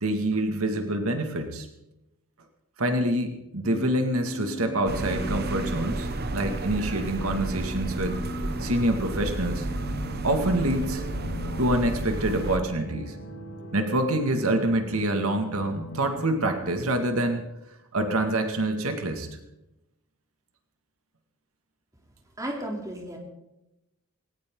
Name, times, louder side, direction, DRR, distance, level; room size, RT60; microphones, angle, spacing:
voice 1, 0.0-1.7 2.8-8.2 8.6-9.7 10.2-11.0 11.6-13.2 13.7-17.4 17.9-19.3, right 1 dB, 80° right, 5 dB, 2.2 m, -26 dB
sound 1, 3.6-16.8, equal, 70° left, 2.9 m, -39 dB
sound 2, 4.9-12.6, right 2 dB, 45° right, 1.1 m, -32 dB
voice 2, 22.4-23.2, right 1 dB, 15° right, 1 dB, 3.3 m, -33 dB
19.5 x 18.0 x 3.9 m, 0.91 s
head